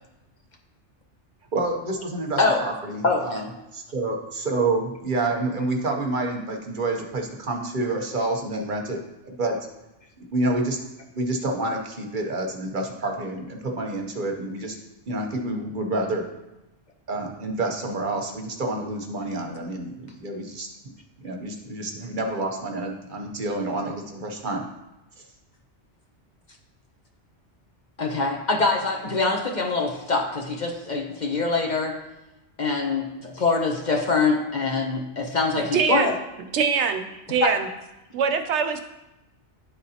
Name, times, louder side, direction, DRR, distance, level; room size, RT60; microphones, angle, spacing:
voice 1, 1.5-9.6 10.3-10.8 11.2-14.8 15.1-16.3 17.1-20.7 21.2-24.6, right 2 dB, 50° right, 2 dB, 0.9 m, -28 dB
voice 2, 3.0-3.4 28.0-32.0 32.6-36.1 37.4-37.5, left 3 dB, 45° left, 1 dB, 0.9 m, -24 dB
voice 3, 35.7-36.2 36.5-37.7 38.1-38.8, right 6 dB, 75° right, 6 dB, 0.9 m, -23 dB
11.5 x 3.9 x 2.8 m, 0.96 s
omnidirectional pair, 1.2 m